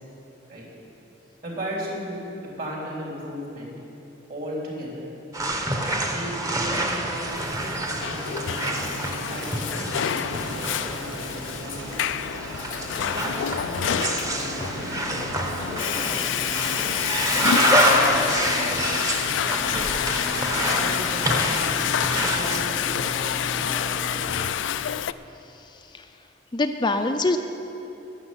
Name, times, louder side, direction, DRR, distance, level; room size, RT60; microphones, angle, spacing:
voice 1, 1.4-3.7 4.3-5.1 6.1-7.3 7.6-8.9 9.3-9.7 10.0-10.3 10.5-11.8 13.0-15.0 15.6-16.6 17.2-20.1 20.7-24.2, equal, 50° right, -3 dB, 3.7 m, -37 dB
sound 1, 5.3-22.6, right 1 dB, 20° right, 1.0 m, -27 dB
sound 2, 7.3-24.6, right 1 dB, 70° right, 1.2 m, -37 dB
Water / Toilet flush, 7.6-25.1, left 9 dB, 90° left, 0.4 m, -27 dB
voice 2, 25.7-26.0 26.5-27.4, left 2 dB, 25° left, 6 dB, 0.4 m, -24 dB
12.0 x 7.3 x 9.8 m, 3.0 s
head